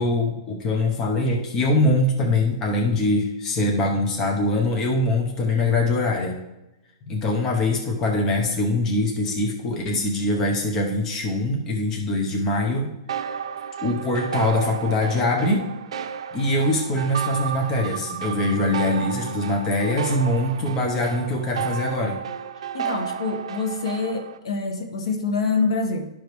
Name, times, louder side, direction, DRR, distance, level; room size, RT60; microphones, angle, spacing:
voice 1, 0.0-6.4 7.1-12.9 13.8-15.7 16.3-22.2, left 2 dB, 15° left, 0 dB, 0.7 m, -23 dB
sound 1, 13.1-24.4, right 8 dB, 70° right, 0.5 m, -32 dB
voice 2, 22.7-26.1, left 4 dB, 75° left, 4 dB, 1.4 m, -26 dB
12.0 x 5.0 x 3.1 m, 0.94 s
hypercardioid pair, 175°, 3 cm